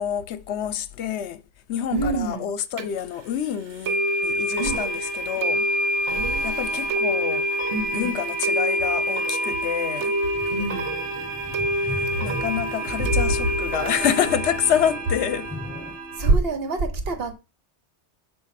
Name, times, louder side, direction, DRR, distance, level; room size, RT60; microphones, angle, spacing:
voice 1, 0.0-1.4 1.7-5.7 6.4-7.5 7.9-10.2 11.8-15.5, left 9 dB, 75° left, 0.9 m, -27 dB
voice 2, 1.9-2.5 4.6-4.8 6.1-6.9 7.7-8.1 10.5-10.9 16.2-17.3, right 3 dB, 60° right, 1.2 m, -25 dB
sound 1, 2.8-2.9 3.8-16.3, equal, 85° right, 1.1 m, -26 dB
sound 2, 10.3-16.0, left 2 dB, 10° left, 0.8 m, -38 dB
7.3 x 2.5 x 5.7 m
omnidirectional pair, 1.2 m